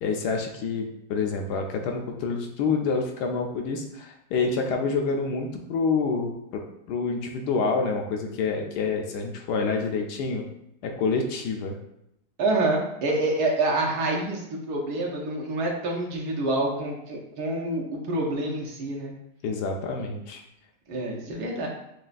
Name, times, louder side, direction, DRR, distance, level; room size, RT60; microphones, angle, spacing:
voice 1, 0.0-10.5 10.8-11.8 19.4-20.4, left 4 dB, 80° left, 2 dB, 1.1 m, -27 dB
voice 2, 12.4-19.1 20.9-21.7, right 2 dB, 75° right, -1 dB, 1.3 m, -27 dB
6.3 x 2.3 x 2.5 m, 0.79 s
omnidirectional pair, 1.8 m